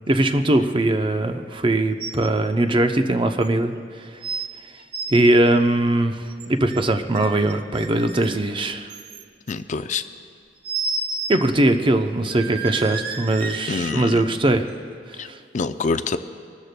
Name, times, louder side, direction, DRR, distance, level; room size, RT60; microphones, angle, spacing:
voice 1, 0.1-3.7 5.1-8.9 11.3-14.7 15.2-15.4, right 1 dB, 30° right, 6 dB, 0.6 m, -20 dB
sound 1, 2.0-2.3 2.6-2.7 3.4-3.5 4.2-4.5 4.8-5.2 6.3-6.8 7.1-8.4 8.9-9.5 10.6-11.4 11.7-11.8 12.3-14.1 14.7-14.8, right 4 dB, 60° right, 0.8 m, -31 dB
voice 2, 9.5-10.0 13.7-14.3 15.2-15.3 15.5-16.2, left 4 dB, 45° left, 10 dB, 0.4 m, -25 dB
24.0 x 13.0 x 2.2 m, 2.3 s
head